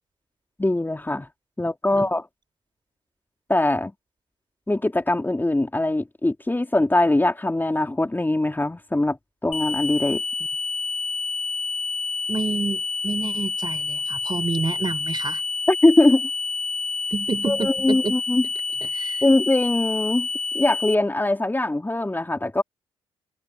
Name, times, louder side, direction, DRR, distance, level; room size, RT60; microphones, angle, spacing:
voice 1, 0.6-1.3 1.6-2.2 3.5-3.9 4.7-10.2 15.7-16.3 17.5-18.4 19.2-20.3 20.5-22.6, left 2 dB, 15° left, 3.3 m, -21 dB
sound 1, 9.5-20.9, left 4 dB, 50° left, 3.3 m, -28 dB
voice 2, 12.3-15.4 17.1-18.2 18.9-19.2, right 4 dB, 35° right, 4.9 m, -28 dB
hypercardioid pair, 45°, 13 cm